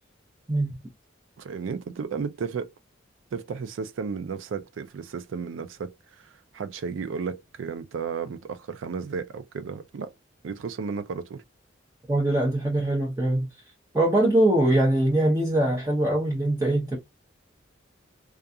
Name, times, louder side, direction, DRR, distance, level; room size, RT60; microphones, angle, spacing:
voice 1, 1.4-2.7 3.3-10.1 10.4-11.4, right 5 dB, 80° right, 0.4 m, -33 dB
voice 2, 12.1-13.5 13.9-17.0, right 1 dB, 15° right, 0.7 m, -22 dB
2.4 x 2.3 x 2.6 m
head